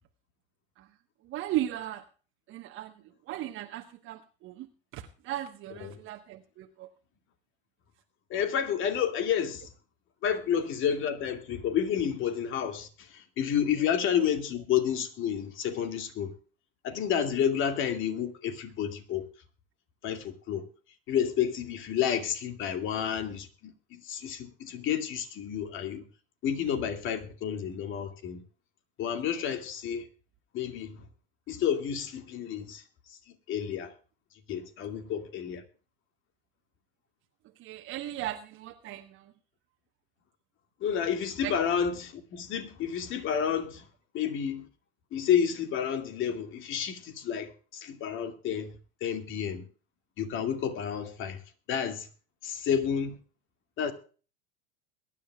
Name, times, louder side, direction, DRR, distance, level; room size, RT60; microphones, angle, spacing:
voice 1, 1.2-2.0 2.5-4.7 4.9-6.9 37.6-39.3 41.4-41.6, right 13 dB, 45° right, 1.2 m, -37 dB
voice 2, 8.3-9.7 10.2-16.3 16.8-19.2 20.0-20.6 21.1-26.0 26.4-28.4 29.0-30.1 30.5-31.0 31.5-32.8 33.1-33.2 33.5-33.9 34.5-35.6 40.8-43.8 44.1-44.6 45.1-48.7 49.0-49.6 50.2-51.4 51.7-52.1 52.4-53.2 53.8-53.9, left 8 dB, 45° left, 2.4 m, -30 dB
22.0 x 11.0 x 2.4 m
hypercardioid pair, 90°, 29 cm